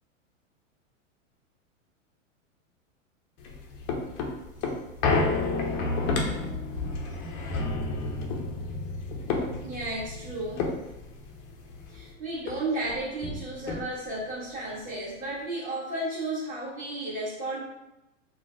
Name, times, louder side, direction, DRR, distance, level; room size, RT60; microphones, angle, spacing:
sound 1, 3.4-12.1 12.5-12.6 12.8-14.2 14.7-14.8, left 3 dB, 30° left, 0.4 m, -31 dB
voice 1, 9.6-10.7 11.9-17.6, right 2 dB, 20° right, -7 dB, 1.3 m, -33 dB
3.1 x 2.1 x 2.5 m, 0.95 s
hypercardioid pair, 110°, 39 cm